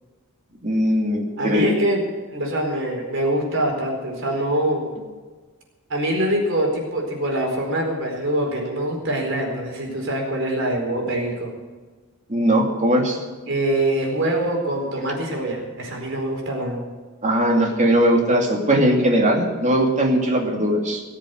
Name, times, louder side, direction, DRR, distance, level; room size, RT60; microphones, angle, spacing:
voice 1, 0.6-1.7 12.3-13.2 17.2-21.0, right 1 dB, 35° right, 1 dB, 2.6 m, -19 dB
voice 2, 1.4-2.0 2.3-4.8 5.9-11.5 13.5-16.8, right 1 dB, 60° right, 0 dB, 4.5 m, -24 dB
19.0 x 7.5 x 8.0 m, 1.4 s
head